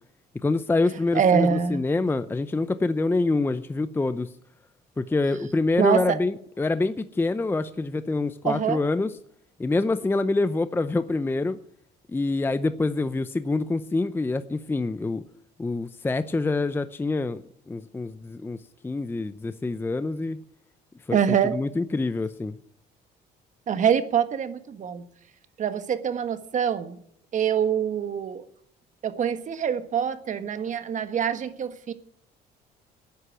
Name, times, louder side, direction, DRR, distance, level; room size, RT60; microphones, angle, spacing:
voice 1, 0.4-4.3 5.0-9.1 9.6-11.6 12.1-15.2 15.6-17.4 17.7-18.6 18.8-20.4 21.1-21.2 21.5-22.5, left 3 dB, 15° left, 12 dB, 0.6 m, -26 dB
voice 2, 1.1-1.9 5.8-6.2 8.4-8.8 21.1-21.5 23.7-25.1 25.6-26.9 27.3-28.4 29.0-31.9, right 8 dB, 45° right, 10 dB, 1.5 m, -25 dB
12.5 x 9.9 x 9.3 m, 0.69 s
cardioid pair, 110°, 17 cm